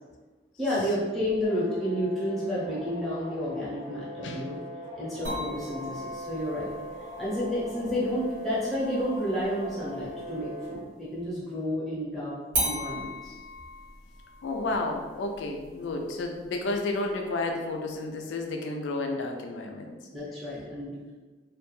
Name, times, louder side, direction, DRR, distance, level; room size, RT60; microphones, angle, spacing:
voice 1, 0.6-4.6 5.0-6.7 7.2-12.3 12.6-13.3 20.1-20.9, equal, ahead, -9 dB, 0.8 m, -31 dB
sound 1, 1.4-10.8, left 1 dB, 35° right, 0.6 m, -41 dB
sound 2, 5.2-10.8 12.5-17.5, equal, 80° right, 1.1 m, -38 dB
voice 2, 14.4-19.9, left 2 dB, 90° left, 3 dB, 0.4 m, -31 dB
2.4 x 2.2 x 3.1 m, 1.3 s
head